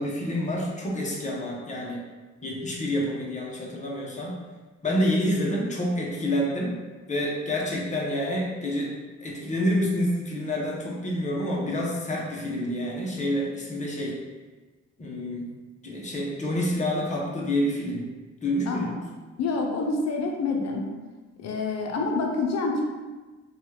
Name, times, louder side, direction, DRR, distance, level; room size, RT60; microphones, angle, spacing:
voice 1, 0.0-2.0 2.4-4.3 4.8-6.8 7.1-8.9 9.2-14.1 15.0-15.5 15.8-18.0 18.4-19.0, equal, 25° left, -3 dB, 0.8 m, -28 dB
voice 2, 19.4-20.8 21.4-22.8, left 3 dB, 60° left, 1 dB, 0.6 m, -27 dB
2.9 x 2.3 x 3.2 m, 1.3 s
cardioid pair, 90°, 30 cm